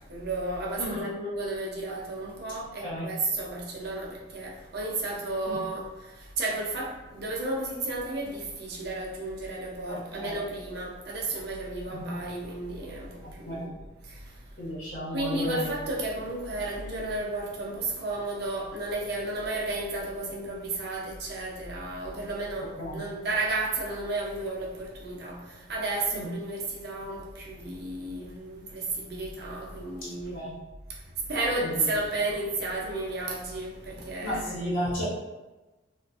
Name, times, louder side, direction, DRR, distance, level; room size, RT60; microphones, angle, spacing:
voice 1, 0.0-14.7 15.1-30.5 30.9-34.7, right 2 dB, 55° right, -3 dB, 0.6 m, -33 dB
voice 2, 0.8-1.1 2.8-3.1 5.5-5.6 9.9-10.4 11.9-12.1 13.2-13.7 14.6-15.9 22.8-23.0 26.1-26.3 30.3-30.6 31.6-31.7 34.2-35.0, equal, 80° left, -9 dB, 1.1 m, -34 dB
2.5 x 2.4 x 2.3 m, 1.1 s
head